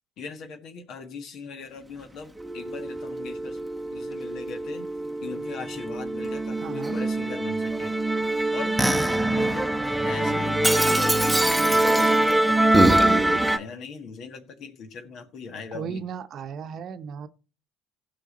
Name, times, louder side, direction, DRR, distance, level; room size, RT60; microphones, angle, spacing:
voice 1, 0.2-3.6 3.9-4.9 5.2-7.9 8.5-8.8 9.3-9.7 10.0-16.0, left 5 dB, 60° left, 1.6 m, -39 dB
Musical instrument, 2.4-13.6, right 1 dB, 5° right, 1.0 m, -23 dB
voice 2, 6.6-7.0 15.7-17.3, right 7 dB, 55° right, 0.9 m, -36 dB
15.5 x 5.6 x 4.2 m
hypercardioid pair, 70°, 0 cm